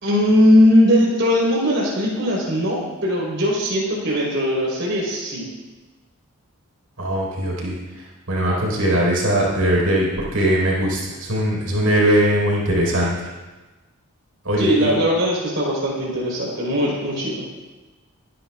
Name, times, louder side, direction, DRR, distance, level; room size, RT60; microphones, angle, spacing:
voice 1, 0.0-5.4 14.6-17.4, equal, 60° right, -5 dB, 4.2 m, -19 dB
voice 2, 7.0-7.7 8.3-13.1 14.4-15.0, right 1 dB, 80° right, -4 dB, 4.5 m, -20 dB
23.5 x 11.0 x 2.4 m, 1.2 s
head